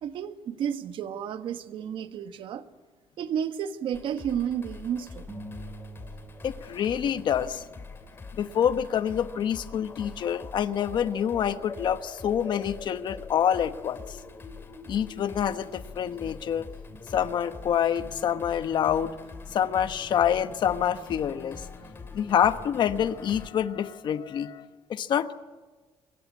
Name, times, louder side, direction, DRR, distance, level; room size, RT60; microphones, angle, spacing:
voice 1, 0.0-2.6 3.2-5.3, right 8 dB, 60° right, 1.3 m, -32 dB
sound 1, 3.9-23.5, left 4 dB, 25° left, 2.7 m, -43 dB
sound 2, 5.3-7.9, right 2 dB, 20° right, 5.3 m, -45 dB
voice 2, 6.4-7.6 8.3-14.2 14.9-16.7 17.1-19.2 19.5-21.7 22.1-25.3, left 9 dB, 55° left, 1.1 m, -27 dB
25.5 x 22.5 x 9.6 m
cardioid pair, 160°, 10 cm